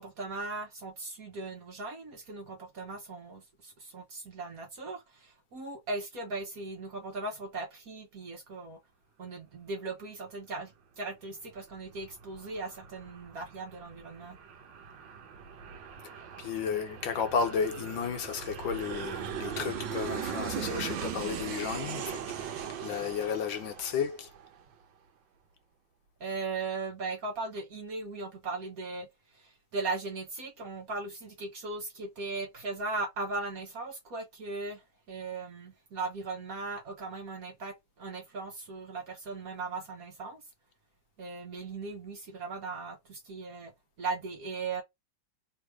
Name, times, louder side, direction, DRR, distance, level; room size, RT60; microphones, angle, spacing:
voice 1, 0.0-8.8 9.2-14.4 26.2-40.4 41.2-43.7 44.0-44.8, right 3 dB, 55° right, 1.2 m, -38 dB
Aircraft, 11.5-24.7, right 8 dB, 70° right, 1.4 m, -39 dB
voice 2, 16.4-22.2 22.8-24.3, left 6 dB, 70° left, 1.5 m, -33 dB
3.4 x 3.1 x 4.7 m
omnidirectional pair, 2.3 m